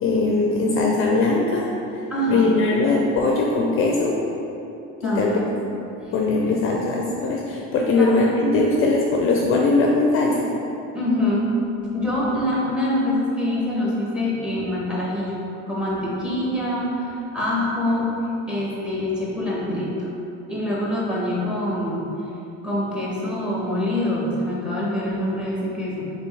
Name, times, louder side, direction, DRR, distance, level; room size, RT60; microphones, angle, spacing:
voice 1, 0.0-1.7 2.3-4.1 5.0-5.4 6.1-10.5, left 3 dB, 45° left, -1 dB, 0.4 m, -20 dB
voice 2, 2.1-2.5 5.0-5.5 6.0-6.1 8.0-8.7 10.9-11.6 11.9-15.4 15.7-18.1 18.5-20.1 20.5-22.1 22.6-26.1, left 1 dB, 5° right, -5 dB, 0.8 m, -25 dB
4.3 x 2.8 x 3.2 m, 2.9 s
cardioid pair, 120°, 32 cm